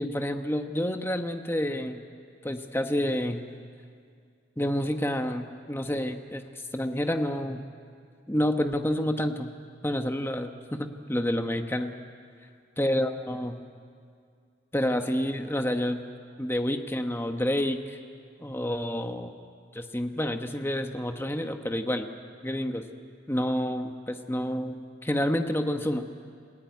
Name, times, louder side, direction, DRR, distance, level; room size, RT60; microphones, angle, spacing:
voice 1, 0.0-2.0 2.4-3.5 4.6-7.6 8.3-9.5 9.8-10.5 10.8-11.9 12.8-13.6 14.7-16.0 16.4-18.0 18.4-19.4 19.7-22.1 22.4-22.9 23.3-26.1, left 1 dB, 10° left, 6 dB, 1.1 m, -29 dB
28.0 x 16.5 x 9.5 m, 2.3 s
head